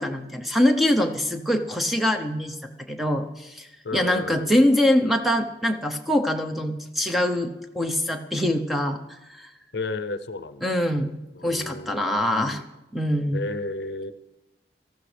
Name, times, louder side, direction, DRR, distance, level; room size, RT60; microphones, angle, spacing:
voice 1, 0.0-2.6 2.9-9.0 9.3-9.5 10.6-11.2 11.4-12.6 12.9-13.5, left 1 dB, ahead, 5 dB, 0.8 m, -24 dB
voice 2, 3.8-4.5 9.7-10.7 11.3-12.6 13.3-14.1, left 2 dB, 70° left, 12 dB, 0.6 m, -33 dB
19.0 x 14.0 x 3.4 m, 0.99 s
head